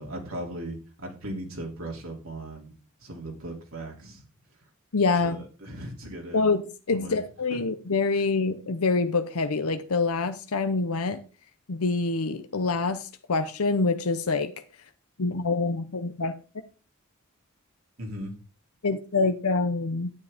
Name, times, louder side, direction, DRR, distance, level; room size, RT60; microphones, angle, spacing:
voice 1, 0.0-2.7 3.0-4.2 5.2-6.4 6.9-7.2 7.5-7.6 8.1-8.2 18.0-18.4, right 1 dB, 70° right, 2.9 m, -38 dB
voice 2, 4.9-5.4 6.3-6.6 6.9-11.2 11.7-14.5 15.2-16.3 18.8-20.1, left 3 dB, 80° left, 0.8 m, -26 dB
10.5 x 9.5 x 3.5 m
head